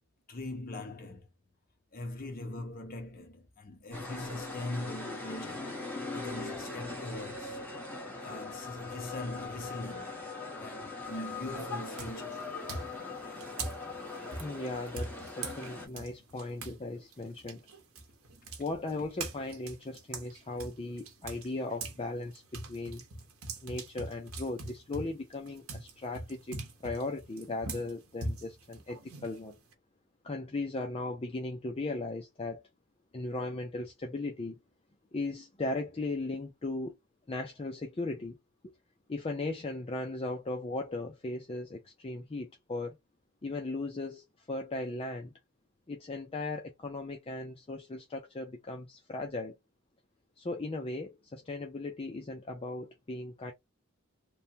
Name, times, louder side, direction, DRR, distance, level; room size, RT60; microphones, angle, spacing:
voice 1, 0.3-1.3 1.9-5.8 6.1-7.6 8.2-10.3 10.6-12.4, left 2 dB, 45° left, 0.8 m, -41 dB
sound 1, 3.9-15.9, left 3 dB, 10° left, 1.0 m, -41 dB
sound 2, 11.0-11.4 11.9-16.8 17.1-22.0 22.3-29.7, right 3 dB, 85° right, 0.9 m, -42 dB
voice 2, 14.4-17.6 18.6-23.0 23.6-29.6 30.2-32.6 33.1-34.6 35.1-37.0 37.3-38.4 38.6-38.7 39.1-43.0 43.4-45.3 45.9-49.6 50.4-53.5, left 2 dB, 25° left, 0.5 m, -37 dB
3.1 x 2.2 x 2.7 m
head